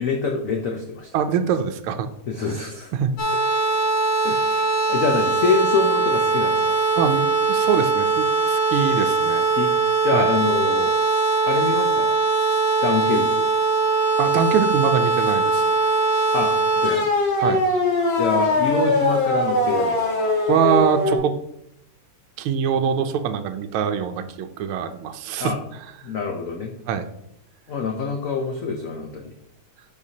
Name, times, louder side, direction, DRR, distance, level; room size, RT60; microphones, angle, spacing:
voice 1, 0.0-1.1 2.3-2.9 4.2-6.8 9.5-9.7 10.0-10.9 11.4-12.1 12.8-13.4 16.3-16.5 16.8-17.0 18.2-20.0 25.4-25.6 26.0-26.7 27.7-29.3, left 4 dB, 85° left, 2 dB, 0.7 m, -25 dB
voice 2, 1.1-2.1 2.9-3.1 6.9-9.4 10.1-10.3 14.2-15.9 17.4-17.7 20.5-21.3 22.4-25.5 26.9-27.1, right 7 dB, 80° right, 7 dB, 1.5 m, -23 dB
sound 1, 3.2-21.2, right 2 dB, 65° left, 2.3 m, -21 dB
12.0 x 4.7 x 2.8 m, 0.78 s
omnidirectional pair, 2.4 m